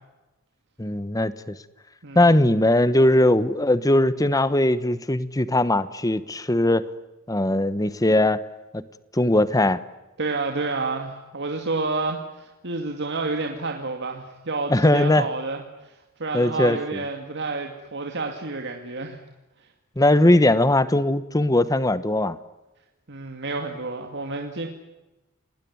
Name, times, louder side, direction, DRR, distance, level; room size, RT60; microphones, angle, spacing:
voice 1, 0.8-1.6 2.1-6.9 7.3-8.4 8.7-8.8 9.1-9.8 14.7-15.3 16.3-17.0 20.0-22.4, left 1 dB, 15° left, 15 dB, 1.1 m, -20 dB
voice 2, 10.2-15.9 16.2-19.2 23.1-24.7, right 3 dB, 55° right, 3 dB, 2.4 m, -29 dB
30.0 x 20.0 x 9.5 m, 1.1 s
head